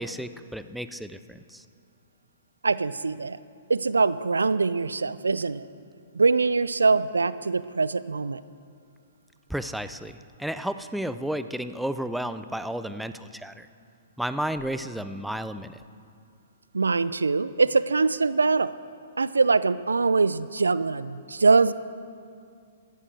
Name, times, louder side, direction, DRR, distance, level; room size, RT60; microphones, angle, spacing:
voice 1, 0.0-1.6 9.5-13.7 14.2-15.8, right 1 dB, ahead, 11 dB, 0.6 m, -32 dB
voice 2, 2.6-3.4 3.7-5.7 6.1-8.4 16.7-18.7 19.2-21.7, right 4 dB, 80° right, 17 dB, 0.4 m, -23 dB
14.5 x 14.0 x 6.2 m, 2.3 s
figure-of-eight pair, 115°, 0 cm